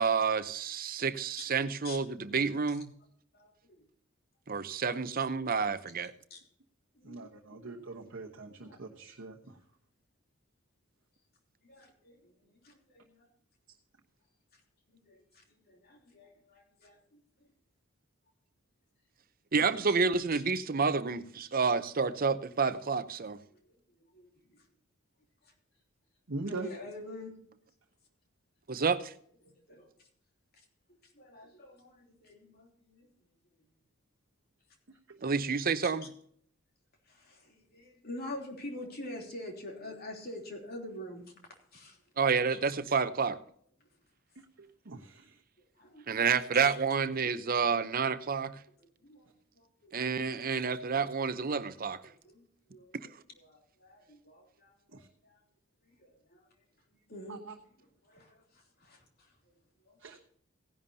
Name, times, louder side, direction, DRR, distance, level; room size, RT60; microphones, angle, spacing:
voice 1, 0.0-2.9 4.5-6.1 19.5-23.4 28.7-29.1 35.2-36.0 42.2-43.4 46.1-48.6 49.9-52.0, right 5 dB, 45° right, 0.7 m, -29 dB
voice 2, 3.3-3.8 5.2-5.3 6.3-6.4 6.9-8.2 8.6-9.1 11.6-13.3 14.5-14.6 14.9-17.2 19.9-20.0 20.3-20.4 23.5-23.7 24.1-24.7 25.4-25.5 26.4-27.3 28.8-28.9 29.4-30.1 30.6-30.7 31.0-33.1 35.8-35.9 37.1-41.2 41.7-42.0 42.5-42.6 45.7-46.3 46.5-46.7 48.8-49.9 50.5-50.6 52.1-53.1 53.4-55.4 55.8-56.4 57.1-57.4 57.8-59.3 59.9-60.2, left 1 dB, 50° left, 3.2 m, -47 dB
voice 3, 7.0-9.3 26.3-26.7 35.1-35.2 44.4-45.3 54.9-55.1 57.3-57.5 60.0-60.2, right 3 dB, 65° right, 1.1 m, -42 dB
17.0 x 11.0 x 2.8 m
head